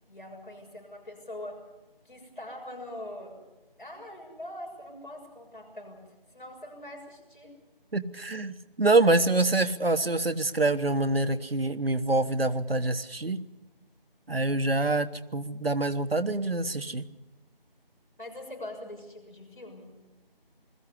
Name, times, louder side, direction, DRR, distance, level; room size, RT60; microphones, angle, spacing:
voice 1, 0.1-1.6 2.0-3.4 3.8-6.0 6.3-7.5 18.2-19.9, left 1 dB, 55° left, 1 dB, 6.8 m, -42 dB
voice 2, 7.9-13.4 14.3-17.0, right 2 dB, 80° right, 11 dB, 1.3 m, -26 dB
21.0 x 14.5 x 9.8 m, 1.1 s
figure-of-eight pair, 175°, 29 cm